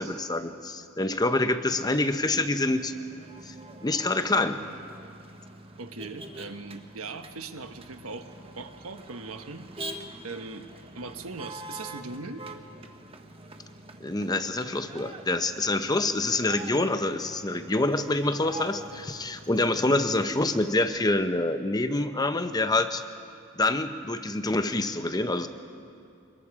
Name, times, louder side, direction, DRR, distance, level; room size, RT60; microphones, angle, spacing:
voice 1, 0.0-2.9 3.5-3.6 3.8-4.6 14.0-23.0 23.6-25.5, left 2 dB, 20° left, 9 dB, 0.8 m, -26 dB
Motor vehicle (road), 1.6-20.8, right 2 dB, 25° right, 1.3 m, -45 dB
voice 2, 5.8-8.3 8.6-10.0 10.2-10.6 10.9-12.4, right 3 dB, 80° right, 7 dB, 1.3 m, -39 dB
24.5 x 21.5 x 4.9 m, 2.6 s
head